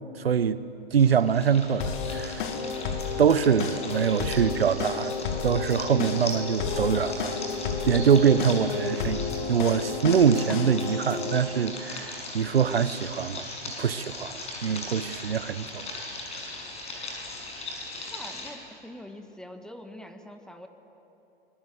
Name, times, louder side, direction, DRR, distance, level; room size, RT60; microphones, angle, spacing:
voice 1, 0.2-0.6 0.9-2.5 3.2-5.1 5.4-7.4 7.8-15.8 16.3-16.4, right 7 dB, 75° right, 1.0 m, -24 dB
sound 1, 1.0-18.5, left 2 dB, 20° left, 6.3 m, -39 dB
sound 2, 1.8-11.4, left 5 dB, 55° left, 2.7 m, -32 dB
voice 2, 18.1-20.7, left 1 dB, ahead, 1.4 m, -44 dB
26.0 x 22.0 x 7.8 m
figure-of-eight pair, 105°, 30 cm